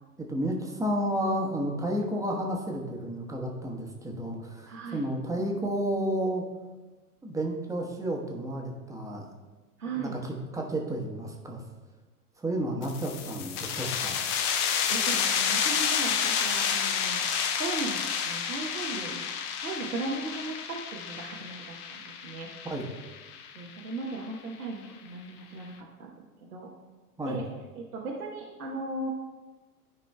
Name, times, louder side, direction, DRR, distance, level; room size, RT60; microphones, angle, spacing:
voice 1, 0.2-6.5 7.2-9.3 9.8-11.6 12.4-14.2 22.6-22.9 27.2-27.4, right 1 dB, 5° right, 0 dB, 1.0 m, -31 dB
voice 2, 4.7-5.0 9.8-10.1 14.9-17.2 17.6-18.0 18.2-19.4 19.6-22.5 23.5-25.7 26.0-26.2 26.4-26.7 27.2-27.4 27.7-29.1, right 3 dB, 75° right, -3 dB, 1.1 m, -37 dB
sound 1, 12.8-24.2, left 7 dB, 20° left, 0.4 m, -30 dB
13.0 x 5.2 x 2.2 m, 1.2 s
figure-of-eight pair, 95°, 46 cm